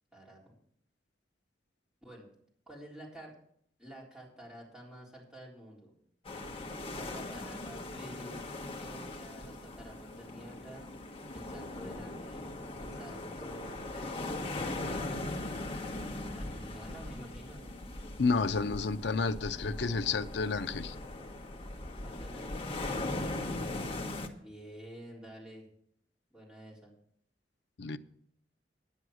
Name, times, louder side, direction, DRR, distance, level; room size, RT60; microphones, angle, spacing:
voice 1, 0.1-0.5 2.0-2.3 2.7-3.3 3.8-5.9 6.9-8.4 8.8-10.9 11.3-15.1 16.3-17.8 22.0-23.1 24.4-25.7 26.3-26.9, right 1 dB, 5° right, -4 dB, 3.8 m, -50 dB
sound 1, 6.2-24.3, left 2 dB, 30° left, 1.2 m, -39 dB
voice 2, 18.2-20.9 27.8-28.0, left 4 dB, 70° left, 10 dB, 0.6 m, -30 dB
10.0 x 9.6 x 6.3 m, 0.67 s
head